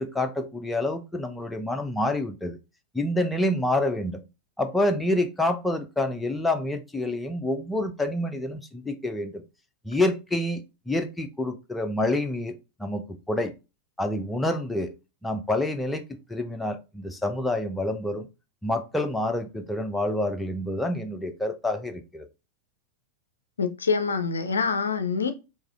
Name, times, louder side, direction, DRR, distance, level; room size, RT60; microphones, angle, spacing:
voice 1, 0.0-2.6 2.9-4.2 4.6-9.4 9.8-10.6 10.9-13.5 14.0-14.9 15.2-16.0 16.3-18.3 18.6-22.3, left 1 dB, 5° left, 0.5 m, -27 dB
voice 2, 23.6-25.3, left 5 dB, 70° left, 0.4 m, -25 dB
4.7 x 2.7 x 2.4 m
figure-of-eight pair, 90°, 0 cm